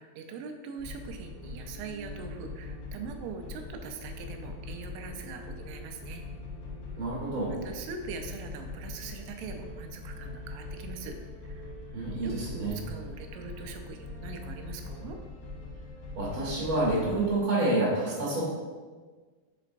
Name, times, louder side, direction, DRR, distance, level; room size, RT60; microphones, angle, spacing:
voice 1, 0.0-6.2 7.5-11.2 11.4-11.7 12.2-15.2, right 5 dB, 90° right, 5 dB, 3.0 m, -42 dB
sound 1, 0.8-17.4, left 3 dB, 65° left, 3.0 m, -42 dB
voice 2, 6.9-7.5 11.9-12.7 16.1-18.4, right 2 dB, 55° right, -5 dB, 0.9 m, -28 dB
10.0 x 4.2 x 2.6 m, 1.4 s
omnidirectional pair, 5.1 m